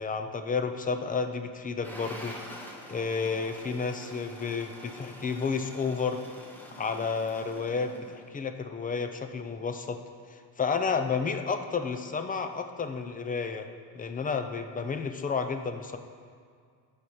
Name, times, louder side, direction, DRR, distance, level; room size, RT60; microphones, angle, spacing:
voice 1, 0.0-2.4 2.9-6.2 6.7-10.0 10.3-13.7 13.9-16.0, left 5 dB, 20° left, 7 dB, 0.3 m, -31 dB
sound 1, 1.8-8.3, equal, 5° left, 0.8 m, -46 dB
14.5 x 5.0 x 4.2 m, 2.1 s
cardioid pair, 150°, 45 cm